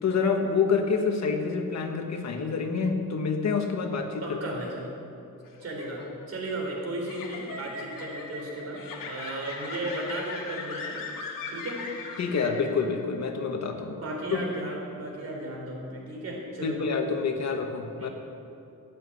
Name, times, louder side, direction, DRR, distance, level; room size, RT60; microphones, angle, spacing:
voice 1, 0.0-4.4 12.2-14.0 14.3-14.5 16.6-18.1, left 5 dB, 55° left, 4 dB, 1.4 m, -27 dB
voice 2, 4.2-4.8 5.6-6.0 6.3-11.0 11.5-11.8 14.0-16.9 18.0-18.1, right 1 dB, 50° right, -1 dB, 3.7 m, -35 dB
sound 1, 5.4-13.0, left 4 dB, 85° left, 2.0 m, -39 dB
13.5 x 9.6 x 8.2 m, 2.7 s
wide cardioid pair, 165°, 33 cm